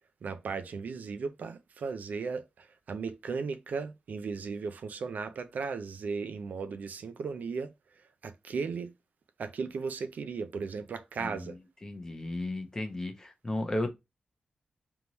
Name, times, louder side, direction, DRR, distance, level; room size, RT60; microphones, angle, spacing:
voice 1, 0.2-7.7 8.2-8.9 9.4-11.6, right 5 dB, 85° right, 0.5 m, -36 dB
voice 2, 11.2-11.5 11.8-13.9, left 1 dB, 20° left, 0.9 m, -34 dB
3.5 x 3.0 x 4.0 m
wide cardioid pair, 150°, 3 cm